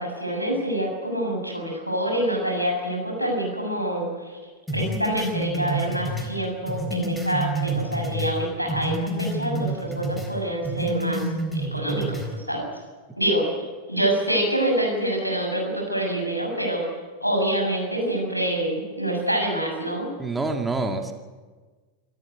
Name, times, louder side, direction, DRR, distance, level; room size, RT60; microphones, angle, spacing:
voice 1, 0.0-4.4 4.7-11.2 11.5-12.7 13.2-13.5 13.9-16.9 17.2-20.1, right 1 dB, 90° left, 2 dB, 6.9 m, -26 dB
sound 1, 4.7-8.4 8.7-10.3 10.6-12.3, right 1 dB, 5° left, 4.0 m, -28 dB
voice 2, 20.2-21.1, right 3 dB, 10° right, 4 dB, 2.1 m, -26 dB
26.5 x 13.5 x 9.2 m, 1.4 s
figure-of-eight pair, 90°, 0 cm